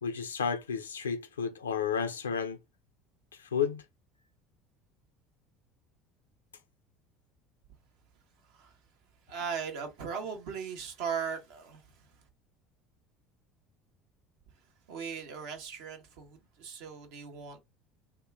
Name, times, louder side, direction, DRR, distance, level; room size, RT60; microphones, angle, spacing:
voice 1, 0.0-2.6 3.5-3.8, left 6 dB, 85° left, 0.5 m, -31 dB
voice 2, 9.3-12.0 14.9-17.6, right 6 dB, 70° right, 1.0 m, -38 dB
2.8 x 2.3 x 3.5 m
hypercardioid pair, 70°, 0 cm